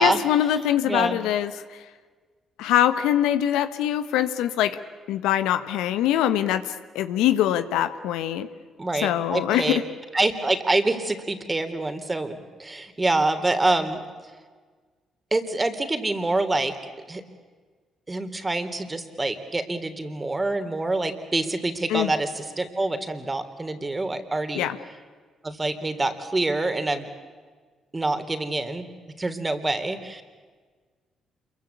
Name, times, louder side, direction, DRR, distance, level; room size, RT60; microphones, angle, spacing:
voice 1, 0.0-1.5 2.6-4.8 5.1-8.5 9.0-9.8 21.9-22.1 24.5-24.8, left 11 dB, 80° left, 11 dB, 1.3 m, -23 dB
voice 2, 0.8-1.2 8.8-9.8 10.1-14.0 15.3-16.7 17.1-17.2 18.1-24.7 25.4-27.1 27.9-28.9 29.2-30.2, right 2 dB, 25° right, 9 dB, 3.5 m, -26 dB
27.5 x 23.0 x 8.5 m, 1.5 s
hypercardioid pair, 50°, 0 cm